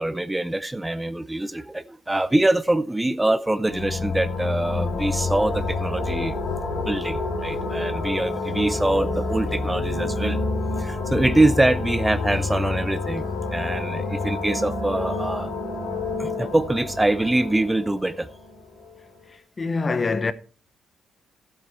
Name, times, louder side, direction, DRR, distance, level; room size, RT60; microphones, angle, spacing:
voice 1, 0.0-6.3 6.7-10.4 10.8-13.3 13.5-15.5 16.2-18.3, right 1 dB, 10° right, 0.6 m, -24 dB
sound 1, 3.5-19.0, left 3 dB, 85° left, 3.7 m, -28 dB
voice 2, 19.6-20.3, left 4 dB, 30° left, 0.8 m, -24 dB
12.0 x 7.7 x 4.6 m
cardioid pair, 90°, 0 cm